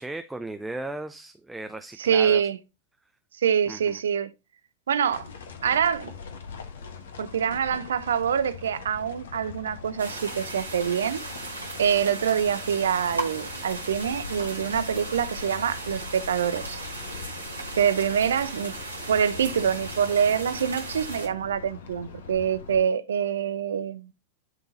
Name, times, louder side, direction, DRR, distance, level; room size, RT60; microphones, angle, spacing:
voice 1, 0.0-2.4 3.7-4.0, right 2 dB, 5° right, 0.5 m, -36 dB
voice 2, 2.0-2.6 3.4-4.3 4.9-5.3 5.6-6.1 7.2-11.2 11.8-16.8 17.7-18.7 19.1-24.1, right 8 dB, 65° right, 0.7 m, -25 dB
sound 1, 5.1-22.8, left 6 dB, 65° left, 1.3 m, -42 dB
sound 2, 10.0-21.3, right 2 dB, 80° right, 1.9 m, -37 dB
11.5 x 3.8 x 2.7 m
figure-of-eight pair, 90°, 0 cm